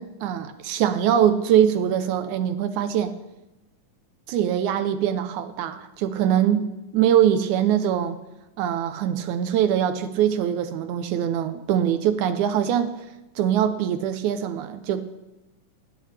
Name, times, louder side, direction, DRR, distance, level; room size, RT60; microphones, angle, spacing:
voice 1, 0.0-3.1 4.3-6.7 6.9-8.2 8.6-12.9 13.4-15.0, right 10 dB, 75° right, 10 dB, 1.9 m, -22 dB
25.5 x 10.0 x 3.3 m, 1.0 s
omnidirectional pair, 3.9 m